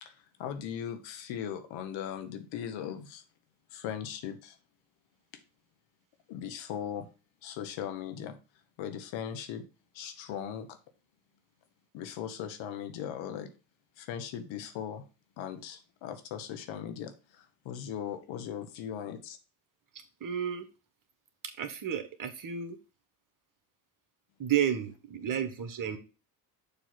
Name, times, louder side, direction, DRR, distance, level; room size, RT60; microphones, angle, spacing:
voice 1, 0.0-3.2 3.7-4.5 6.3-7.1 7.4-8.4 8.8-9.6 9.9-10.7 11.9-13.5 14.0-15.0 15.4-19.4, left 9 dB, 60° left, 7 dB, 1.3 m, -39 dB
voice 2, 20.2-20.7 21.6-22.8 24.4-26.0, right 9 dB, 40° right, 8 dB, 1.4 m, -31 dB
6.8 x 3.1 x 5.8 m, 0.33 s
hypercardioid pair, 70°, 50 cm